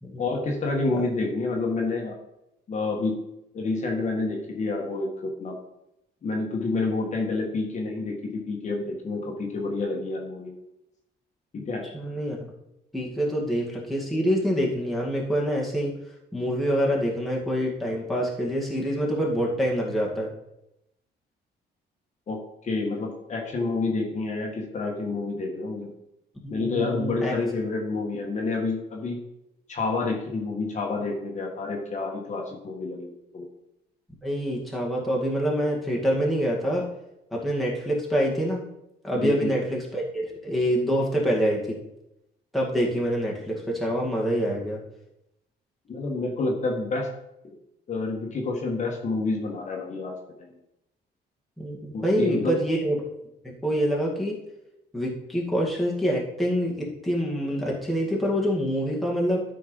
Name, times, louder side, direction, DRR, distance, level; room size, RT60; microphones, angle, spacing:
voice 1, 0.2-2.2 2.7-3.1 3.5-5.5 6.2-10.5 11.5-11.9 22.3-25.9 26.5-29.2 29.7-33.5 39.1-39.5 45.9-47.1 47.4-47.5 47.9-50.5 51.9-52.6, left 3 dB, 40° left, 0 dB, 1.6 m, -29 dB
voice 2, 11.9-12.5 12.9-15.9 16.3-20.3 26.4-27.3 34.2-36.9 37.3-38.6 39.0-41.8 42.5-44.8 51.6-53.0 53.4-54.4 54.9-59.4, equal, ahead, -4 dB, 2.1 m, -26 dB
12.0 x 4.7 x 5.4 m, 0.86 s
cardioid pair, 140°, 18 cm